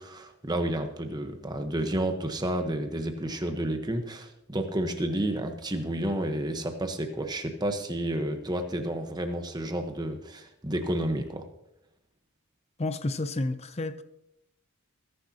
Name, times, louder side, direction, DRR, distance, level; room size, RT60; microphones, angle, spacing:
voice 1, 0.0-11.4, right 1 dB, 20° right, 5 dB, 1.1 m, -31 dB
voice 2, 12.8-14.0, left 2 dB, 30° left, 12 dB, 0.6 m, -30 dB
20.0 x 10.0 x 2.9 m, 0.82 s
head